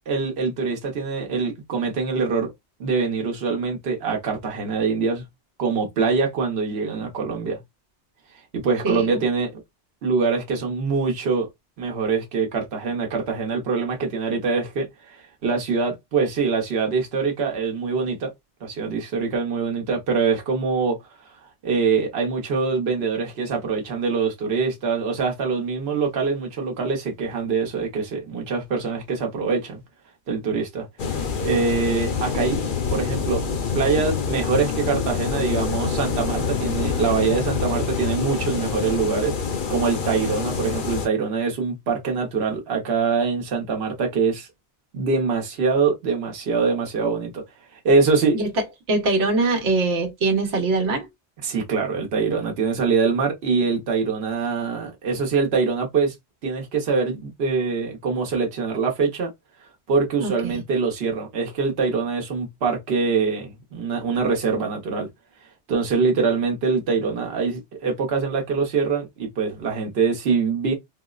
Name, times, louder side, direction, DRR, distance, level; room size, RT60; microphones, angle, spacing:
voice 1, 0.1-2.5 2.8-5.2 5.6-7.6 8.5-9.5 10.0-11.5 11.8-18.3 18.6-21.0 21.6-29.8 30.3-30.9 31.4-32.6 32.9-33.4 33.7-39.3 39.7-44.5 44.9-47.4 47.7-48.4 51.4-56.1 56.4-59.3 59.9-65.1 65.7-70.7, right 5 dB, 65° right, 1.1 m, -24 dB
voice 2, 8.8-9.2 48.3-48.5 48.9-51.1 60.2-60.6, right 3 dB, 85° right, 1.2 m, -23 dB
sound 1, 31.0-41.1, left 5 dB, 55° left, 0.7 m, -26 dB
4.0 x 2.0 x 2.3 m
omnidirectional pair, 1.2 m